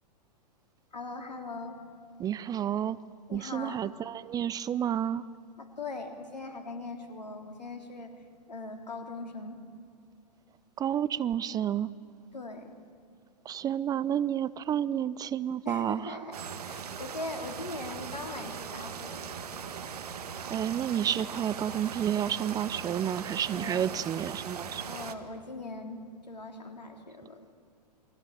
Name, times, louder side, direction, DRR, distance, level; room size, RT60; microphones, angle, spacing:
voice 1, 0.9-1.8 3.3-3.8 5.6-8.1 8.5-9.6 12.3-12.7 15.7-16.4 16.7-19.3 23.5-23.9 24.9-27.4, left 3 dB, 80° left, 5 dB, 3.5 m, -40 dB
voice 2, 2.2-3.0 3.3-5.3 10.8-11.9 13.4-16.4 20.5-24.9, right 10 dB, 15° right, 18 dB, 0.5 m, -30 dB
sound 1, 16.3-25.1, right 7 dB, 65° right, 1.7 m, -40 dB
28.5 x 21.0 x 9.1 m, 2.4 s
figure-of-eight pair, 105°, 21 cm